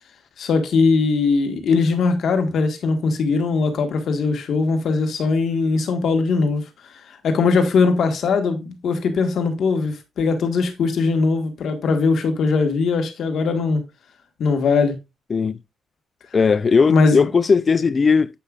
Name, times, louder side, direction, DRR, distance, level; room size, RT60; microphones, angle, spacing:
voice 1, 0.4-6.6 7.1-13.8 14.4-14.9 16.9-17.3, left 4 dB, 65° left, 1.5 m, -20 dB
voice 2, 16.3-18.3, left 5 dB, 35° left, 0.3 m, -17 dB
8.4 x 5.4 x 2.4 m
cardioid pair, 90°, 0 cm